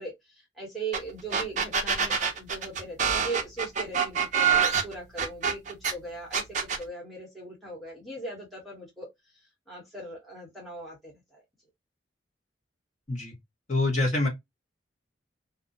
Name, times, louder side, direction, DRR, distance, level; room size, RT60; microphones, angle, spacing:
voice 1, 0.0-6.4 6.8-9.1 9.7-11.4, right 3 dB, ahead, 0.9 m, -39 dB
sound 1, 0.9-1.0 1.3-5.9 6.3-6.8, right 6 dB, 40° right, 0.4 m, -25 dB
voice 2, 13.7-14.3, left 2 dB, 40° left, 1.0 m, -25 dB
2.4 x 2.0 x 2.5 m
head